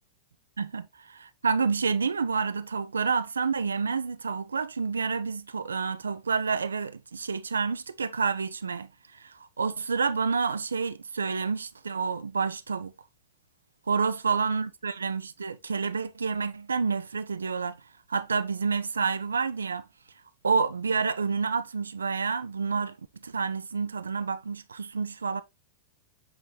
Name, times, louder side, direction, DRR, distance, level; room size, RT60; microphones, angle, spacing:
voice 1, 1.1-12.9 13.9-17.8 18.1-19.8 20.4-23.0 23.2-25.4, right 5 dB, 80° right, 0.4 m, -29 dB
7.9 x 3.9 x 3.1 m
figure-of-eight pair, 95°, 0 cm